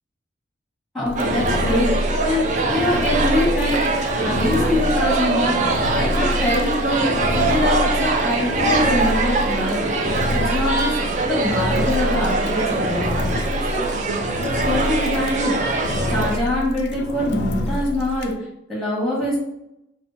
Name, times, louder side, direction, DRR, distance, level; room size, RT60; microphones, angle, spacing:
voice 1, 0.9-3.8 4.1-9.9 10.3-13.2 13.7-13.8 14.4-15.6 16.1-19.4, left 1 dB, ahead, -5 dB, 1.0 m, -24 dB
Engine, 1.1-18.4, left 1 dB, 60° left, 0.4 m, -27 dB
sound 1, 1.2-16.4, right 3 dB, 40° right, 0.3 m, -23 dB
4.3 x 2.2 x 2.5 m, 0.84 s
head